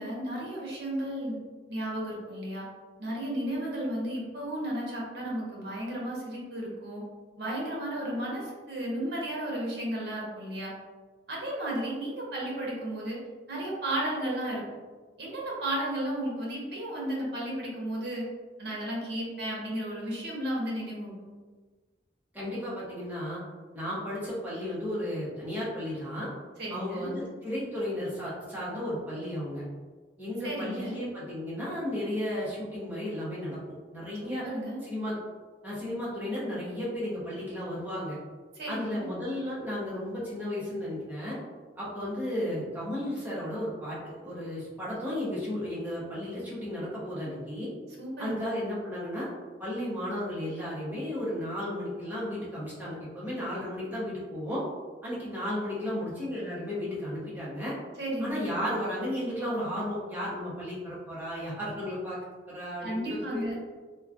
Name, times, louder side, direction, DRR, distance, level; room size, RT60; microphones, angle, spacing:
voice 1, 0.0-1.4 1.7-2.7 3.0-7.0 7.4-10.7 11.3-13.2 13.5-14.6 15.2-18.3 18.6-21.3 26.6-27.1 30.4-30.9 34.2-34.8 38.6-39.1 48.0-48.3 58.0-58.4 62.8-63.5, right 1 dB, 60° right, -4 dB, 0.9 m, -33 dB
voice 2, 22.3-23.4 23.7-26.3 26.7-29.6 30.2-34.4 34.8-35.2 35.6-38.2 38.7-41.4 41.8-47.7 48.2-49.3 49.6-54.6 55.0-57.7 58.2-62.2 62.5-63.4, left 1 dB, 10° right, -8 dB, 0.8 m, -34 dB
3.0 x 2.2 x 2.4 m, 1.4 s
head